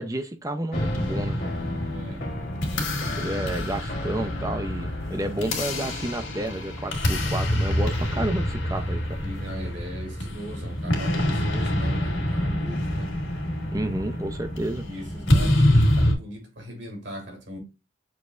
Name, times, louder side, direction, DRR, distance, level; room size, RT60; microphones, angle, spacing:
voice 1, 0.0-1.5 3.1-9.2 13.7-14.9, right 1 dB, 15° right, 0.5 m, -31 dB
sound 1, 0.7-16.1, left 1 dB, 65° left, 1.7 m, -26 dB
sound 2, 0.7-6.3, left 2 dB, 45° left, 0.8 m, -36 dB
voice 2, 1.9-2.4 9.2-13.3 14.8-17.6, equal, 65° right, 2.3 m, -39 dB
6.2 x 3.3 x 2.4 m
head